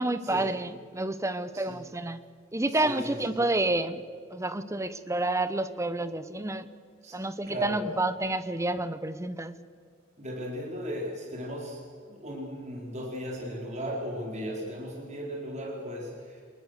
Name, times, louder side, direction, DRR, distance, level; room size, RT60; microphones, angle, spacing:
voice 1, 0.0-2.2 2.5-4.0 4.3-6.7 7.1-9.6, right 2 dB, 15° right, 13 dB, 0.9 m, -29 dB
voice 2, 2.8-3.4 7.0-7.2 7.5-7.8 10.2-11.8 12.1-16.4, equal, 35° right, -1 dB, 4.4 m, -36 dB
27.0 x 20.0 x 6.6 m, 2.1 s
head